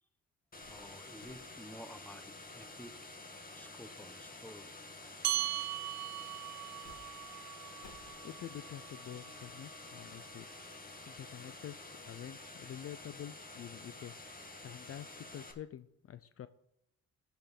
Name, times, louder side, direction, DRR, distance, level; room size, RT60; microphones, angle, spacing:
sound 1, 0.5-15.5, left 2 dB, 30° left, 2.0 m, -50 dB
sound 2, 0.6-0.9 1.2-6.9 7.2-7.3 7.8-14.4, left 5 dB, 70° left, 3.0 m, -66 dB
voice 1, 0.7-3.0 3.5-4.7, equal, 5° left, 10 dB, 1.2 m, -52 dB
sound 3, 5.2-10.0, right 14 dB, 65° right, 0.5 m, -40 dB
voice 2, 8.2-10.5 11.1-14.1 14.6-16.5, left 10 dB, 50° left, 13 dB, 0.6 m, -47 dB
13.0 x 5.8 x 6.0 m, 0.81 s
cardioid pair, 90°, 30 cm